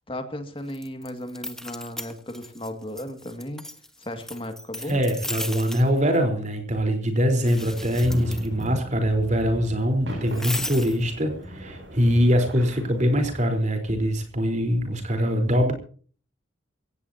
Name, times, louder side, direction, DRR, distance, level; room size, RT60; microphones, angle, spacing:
voice 1, 0.1-3.6 4.0-5.0, left 1 dB, 25° left, 6 dB, 2.2 m, -35 dB
sound 1, 0.7-2.7 3.0-5.9 7.4-8.7 10.3-11.0, left 1 dB, ahead, 1.3 m, -36 dB
voice 2, 4.9-15.7, equal, 35° right, 4 dB, 4.3 m, -23 dB
sound 2, 7.6-13.5, equal, 65° right, 6.8 m, -37 dB
23.0 x 17.5 x 2.9 m, 0.43 s
head